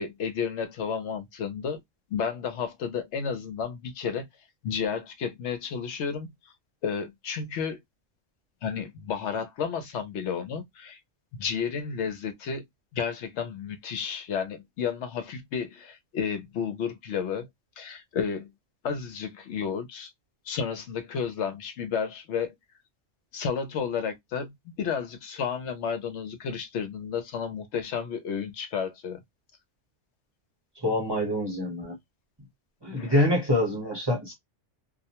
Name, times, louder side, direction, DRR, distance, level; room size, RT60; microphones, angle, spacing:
voice 1, 0.0-1.8 2.1-4.3 4.6-6.5 6.8-7.8 8.6-11.0 11.4-12.6 12.9-17.5 17.8-18.5 18.8-20.1 20.5-22.5 23.3-29.2 32.9-33.3, left 6 dB, 70° left, 0.8 m, -32 dB
voice 2, 30.8-31.9 32.8-34.3, left 1 dB, 25° right, 0.9 m, -25 dB
2.3 x 2.1 x 2.8 m
omnidirectional pair, 1.3 m